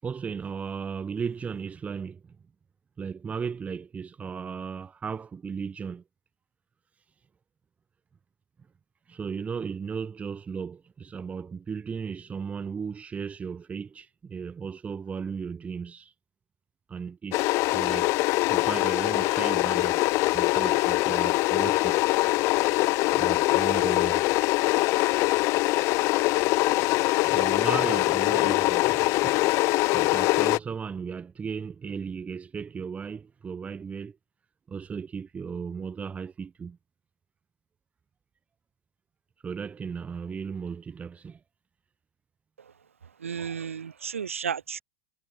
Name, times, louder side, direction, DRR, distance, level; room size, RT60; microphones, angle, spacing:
voice 1, 0.0-2.3 3.0-6.0 9.1-16.1 16.9-18.1 18.5-20.0 20.3-22.0 23.1-24.3 27.2-34.2 34.7-36.8 39.4-41.4, right 6 dB, 20° right, 7.4 m, -36 dB
sound 1, 17.3-30.6, left 22 dB, 40° left, 0.6 m, -23 dB
voice 2, 43.2-44.8, right 7 dB, 75° right, 3.3 m, -33 dB
figure-of-eight pair, 95°, 7 cm